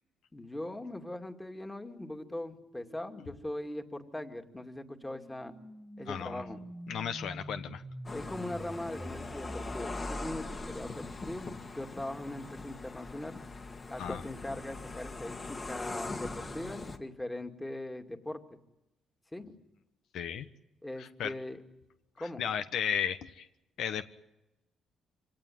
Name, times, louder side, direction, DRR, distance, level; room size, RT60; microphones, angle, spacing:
voice 1, 0.3-5.5 6.0-6.6 8.1-13.4 13.9-18.6 19.3-19.5 20.8-21.6 22.2-22.5, left 1 dB, 10° left, 5 dB, 2.4 m, -40 dB
sound 1, 0.9-11.0, right 1 dB, 5° right, 2.1 m, -47 dB
voice 2, 6.1-6.4 6.9-7.8 14.0-14.2 20.1-20.5 21.0-21.3 22.2-23.5 23.8-24.1, left 8 dB, 75° left, 10 dB, 1.1 m, -34 dB
sound 2, 8.0-17.0, left 3 dB, 35° left, 2.1 m, -41 dB
25.5 x 18.0 x 9.4 m, 0.94 s
cardioid pair, 90°, 0 cm